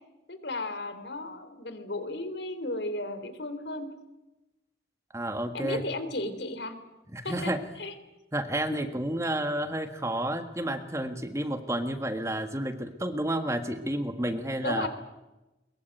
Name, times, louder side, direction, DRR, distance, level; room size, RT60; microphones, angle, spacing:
voice 1, 0.3-3.9 5.5-6.7 7.2-7.5 7.8-7.9 8.7-8.8 14.6-14.9, left 2 dB, 70° left, 11 dB, 3.5 m, -34 dB
voice 2, 5.1-5.8 7.1-7.6 8.3-14.9, right 1 dB, 15° right, 8 dB, 1.7 m, -31 dB
22.5 x 22.0 x 9.3 m, 1.0 s
head